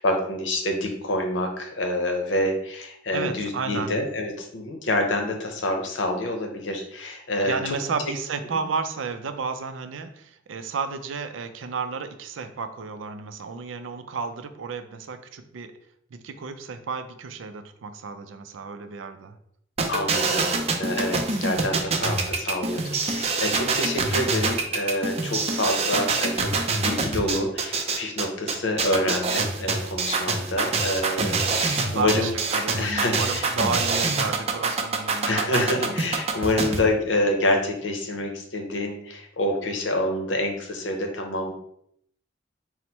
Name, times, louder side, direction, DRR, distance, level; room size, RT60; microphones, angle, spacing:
voice 1, 0.0-7.8 19.9-32.3 32.8-33.5 35.2-41.5, left 1 dB, 75° left, 3 dB, 0.8 m, -27 dB
voice 2, 3.1-4.0 7.4-15.7 16.1-19.4 31.7-35.5 35.9-36.0, right 5 dB, 90° right, 9 dB, 0.4 m, -32 dB
sound 1, 19.8-36.8, right 4 dB, 35° right, 0.4 m, -25 dB
4.2 x 2.1 x 4.3 m, 0.71 s
head